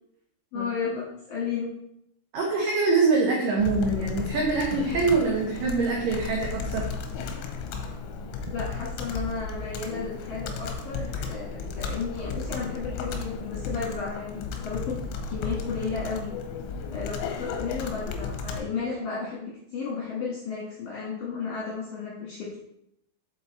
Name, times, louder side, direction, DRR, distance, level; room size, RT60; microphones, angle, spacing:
voice 1, 0.5-1.7 8.5-15.0 15.3-16.3 16.9-22.6, left 5 dB, 65° left, -5 dB, 2.1 m, -33 dB
voice 2, 2.3-6.9, right 4 dB, 85° right, -2 dB, 1.9 m, -24 dB
Computer keyboard, 3.6-18.6, left 5 dB, 90° left, 3.1 m, -34 dB
7.1 x 4.6 x 4.1 m, 0.78 s
omnidirectional pair, 5.4 m